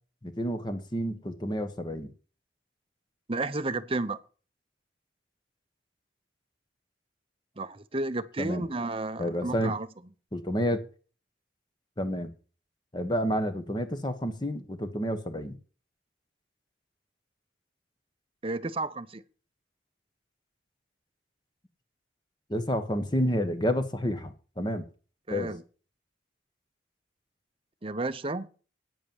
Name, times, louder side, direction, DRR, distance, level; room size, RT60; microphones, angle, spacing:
voice 1, 0.2-2.1 8.4-8.6 9.2-9.7 10.3-10.9 12.0-12.3 12.9-15.6 22.5-24.8 25.3-25.5, equal, 20° left, 1.2 m, -30 dB
voice 2, 3.3-4.2 7.6-9.9 18.4-19.2 25.3-25.6 27.8-28.5, right 2 dB, 30° right, 0.7 m, -32 dB
9.3 x 8.4 x 7.0 m
head